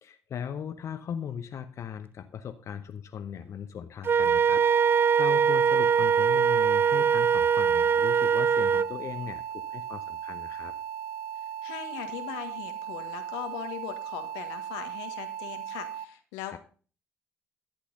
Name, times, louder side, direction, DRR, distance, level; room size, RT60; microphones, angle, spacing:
voice 1, 0.0-10.7 16.5-16.6, left 8 dB, 60° left, 8 dB, 0.9 m, -38 dB
Wind instrument woodwind instrument, 4.0-8.9, right 7 dB, 40° right, 0.4 m, -22 dB
sound 1, 4.6-16.0, right 9 dB, 85° right, 0.7 m, -37 dB
voice 2, 11.6-16.6, left 12 dB, 85° left, 7 dB, 1.3 m, -39 dB
12.0 x 8.3 x 3.8 m, 0.39 s
hypercardioid pair, 50°, 6 cm